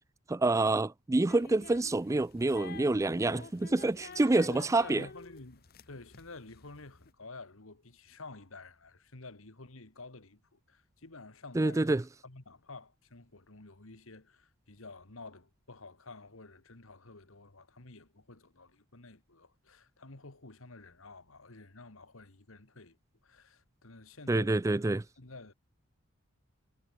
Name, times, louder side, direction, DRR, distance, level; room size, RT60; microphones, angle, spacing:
voice 1, 0.3-5.1 11.6-12.0 24.3-25.0, right 2 dB, 15° right, 0.3 m, -27 dB
sound 1, 1.3-7.1, left 4 dB, 45° left, 1.0 m, -50 dB
voice 2, 4.5-23.0 23.2-24.9 25.2-25.5, left 3 dB, 70° left, 2.0 m, -50 dB
head